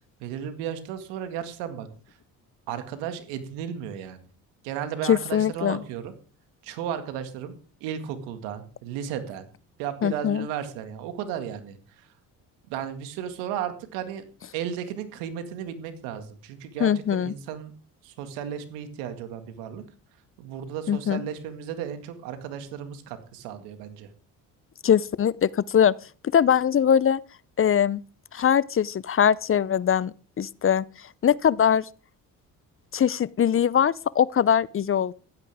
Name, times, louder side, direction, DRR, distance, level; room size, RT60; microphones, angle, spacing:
voice 1, 0.2-1.9 2.7-4.2 4.6-6.1 6.6-7.5 7.8-9.4 9.8-12.1 12.7-14.2 14.5-17.7 18.0-19.8 20.4-24.1, right 9 dB, 85° right, 2.1 m, -34 dB
voice 2, 5.1-5.8 10.0-10.5 16.8-17.3 20.9-21.2 24.8-25.9 26.3-27.2 27.6-28.0 28.3-30.8 31.2-31.9 32.9-35.1, left 8 dB, 35° left, 0.5 m, -22 dB
15.5 x 12.5 x 3.5 m
supercardioid pair, 60°, 40 cm